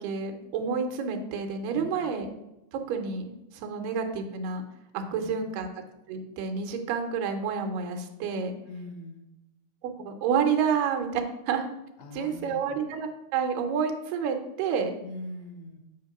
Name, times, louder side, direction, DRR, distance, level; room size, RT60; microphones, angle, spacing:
voice 1, 0.0-2.3 2.9-4.6 4.9-5.7 6.1-8.5 9.8-11.7 12.1-15.0, right 6 dB, 90° right, 4 dB, 2.4 m, -29 dB
voice 2, 5.0-5.3 8.7-9.3 12.0-12.8 15.0-15.8, left 1 dB, 75° left, 5 dB, 1.5 m, -42 dB
7.8 x 2.9 x 5.9 m, 0.91 s
omnidirectional pair, 3.8 m